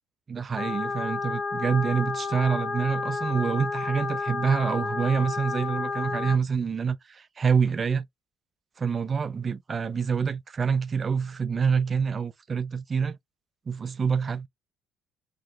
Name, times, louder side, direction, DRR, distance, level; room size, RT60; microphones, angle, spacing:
voice 1, 0.3-8.1 8.8-13.2 13.7-14.5, right 6 dB, 35° right, 0.3 m, -26 dB
sound 1, 0.6-6.4, left 4 dB, 40° left, 0.9 m, -31 dB
3.0 x 2.9 x 3.8 m
supercardioid pair, 80°, 0 cm